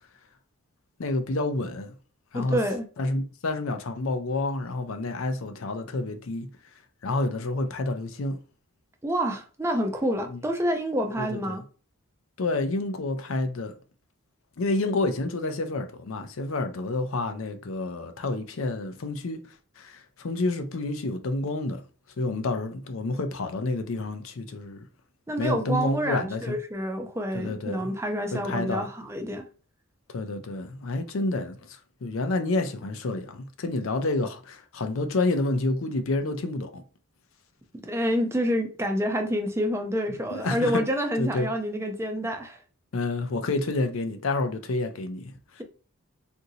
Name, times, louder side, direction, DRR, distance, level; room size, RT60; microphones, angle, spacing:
voice 1, 1.0-1.9 2.3-2.6 3.0-6.5 7.0-8.4 10.3-10.4 11.2-11.6 12.4-13.7 14.6-19.4 19.8-21.8 22.2-24.8 25.4-26.6 27.3-27.9 28.3-28.9 30.1-36.8 40.3-40.8 41.2-41.5 42.9-45.6, left 2 dB, 65° left, 0.5 m, -29 dB
voice 2, 2.3-2.8 9.0-11.6 25.3-29.5 37.9-42.6, equal, 10° right, 0.5 m, -28 dB
3.9 x 2.6 x 2.7 m
head